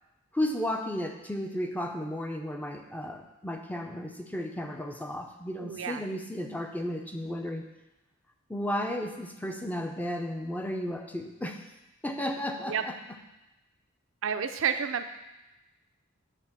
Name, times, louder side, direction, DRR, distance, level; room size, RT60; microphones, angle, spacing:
voice 1, 0.3-7.7 8.5-11.6 12.0-13.2, left 1 dB, 10° left, 4 dB, 0.5 m, -34 dB
voice 2, 5.6-6.0 12.7-12.8 14.2-15.1, right 7 dB, 75° right, 8 dB, 0.5 m, -30 dB
6.7 x 3.5 x 6.0 m, 0.99 s
head